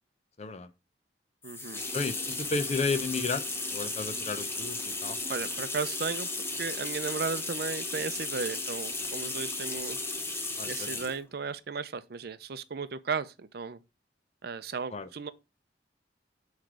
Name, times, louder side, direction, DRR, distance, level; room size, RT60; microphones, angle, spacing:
voice 1, 0.4-0.7 1.9-3.4 3.7-5.2 10.6-11.0 14.9-15.1, left 4 dB, 35° left, 0.6 m, -33 dB
sound 1, 1.4-11.2, left 2 dB, 15° left, 0.9 m, -35 dB
voice 2, 1.4-1.8 5.3-6.3 6.6-10.0 10.6-13.8 14.4-15.3, right 5 dB, 60° right, 0.5 m, -35 dB
7.8 x 3.2 x 4.6 m
head